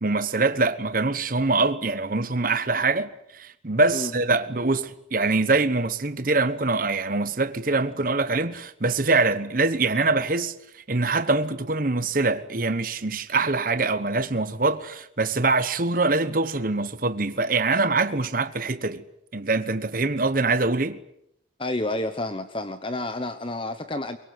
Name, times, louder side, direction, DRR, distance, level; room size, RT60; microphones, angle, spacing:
voice 1, 0.0-19.0 19.3-21.0, right 3 dB, 45° right, 1.1 m, -24 dB
voice 2, 21.6-24.2, left 2 dB, 25° left, 1.1 m, -30 dB
23.5 x 23.0 x 9.5 m
head